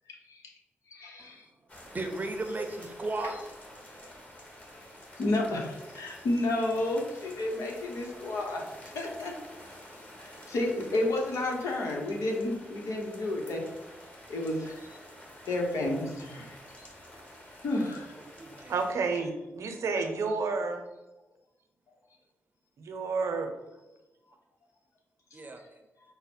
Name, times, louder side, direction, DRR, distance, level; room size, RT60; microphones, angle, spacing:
voice 1, 0.9-1.4 5.2-8.6 8.9-9.3 10.2-13.6 14.3-15.0 15.5-16.6 17.6-18.1, left 1 dB, 80° left, 0.9 m, -31 dB
sound 1, 1.7-18.9, equal, 30° left, 1.3 m, -49 dB
voice 2, 1.9-3.4 18.4-18.7 25.3-25.6, right 2 dB, 35° right, 0.6 m, -34 dB
voice 3, 18.7-20.8 22.8-23.5, right 4 dB, 80° right, 0.7 m, -30 dB
5.7 x 2.1 x 4.2 m
cardioid pair, 60°, 5 cm